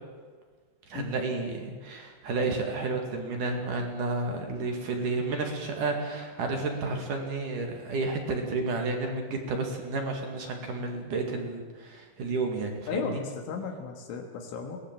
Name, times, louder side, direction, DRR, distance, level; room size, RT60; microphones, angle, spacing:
voice 1, 0.9-13.2, right 3 dB, 50° right, 3 dB, 3.1 m, -31 dB
voice 2, 12.9-14.8, left 5 dB, 85° left, 3 dB, 4.3 m, -35 dB
22.5 x 19.0 x 7.5 m, 1.5 s
omnidirectional pair, 5.4 m